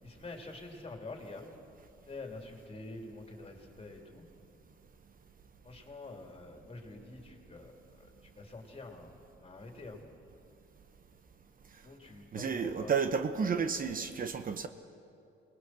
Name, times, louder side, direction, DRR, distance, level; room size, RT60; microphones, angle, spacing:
voice 1, 0.0-1.5 2.1-4.3 5.6-9.2 9.4-10.0 11.8-12.9, left 2 dB, 30° left, 3.5 m, -47 dB
voice 2, 12.3-14.7, right 6 dB, 45° right, 1.0 m, -31 dB
27.5 x 20.5 x 6.2 m
cardioid pair, 90°, 20 cm